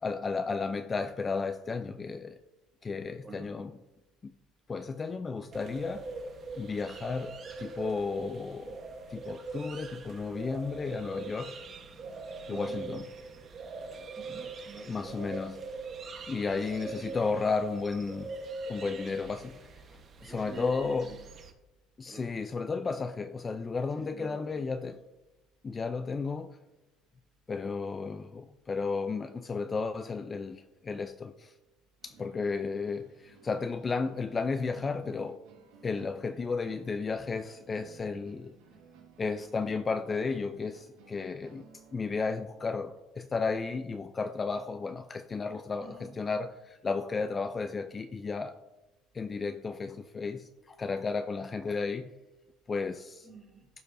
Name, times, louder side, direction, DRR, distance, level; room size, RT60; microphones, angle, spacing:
voice 1, 0.0-2.4 2.8-3.7 4.2-4.3 4.7-6.0 6.6-11.5 12.5-13.0 14.9-15.6 16.3-18.3 18.7-19.6 19.9-21.1 22.0-25.0 25.6-26.6 27.5-31.5 32.0-35.4 35.8-38.5 39.2-48.5 49.1-52.1 52.7-53.3, left 4 dB, 25° left, 0.3 m, -33 dB
voice 2, 3.2-3.5 12.5-12.8 14.2-15.2 19.0-19.2 20.2-21.3 22.0-22.3 23.9-24.8 45.8-46.2 53.2-53.7, right 3 dB, 15° right, 2.0 m, -48 dB
sound 1, 5.5-21.5, right 3 dB, 40° right, 1.0 m, -42 dB
sound 2, 32.0-42.8, right 5 dB, 85° right, 1.4 m, -59 dB
14.5 x 4.9 x 2.6 m
cardioid pair, 115°, 0 cm